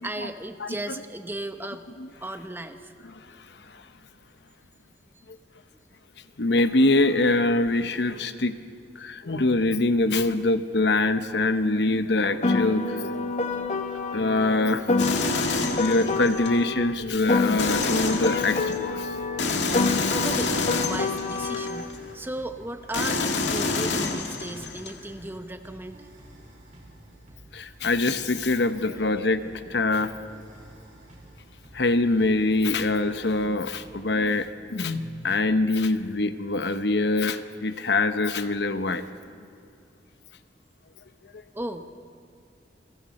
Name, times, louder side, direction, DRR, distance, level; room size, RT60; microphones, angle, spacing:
voice 1, 0.0-1.9 2.2-2.9 20.1-26.0 41.5-41.9, right 1 dB, 10° right, 7 dB, 1.0 m, -35 dB
voice 2, 6.4-8.6 9.0-13.1 14.1-14.9 15.8-19.2 19.9-20.1 27.5-29.4 29.7-30.1 31.7-39.0, left 2 dB, 70° left, 10 dB, 1.0 m, -24 dB
Piano, 12.4-16.9 17.3-21.9, left 3 dB, 45° left, 1.1 m, -27 dB
sound 1, 15.0-16.5 17.6-18.8 19.4-22.0 22.9-24.9, left 3 dB, 85° left, 1.9 m, -28 dB
sound 2, 16.5-34.3, right 1 dB, 45° right, 4.8 m, -50 dB
29.0 x 23.0 x 4.3 m, 2.4 s
head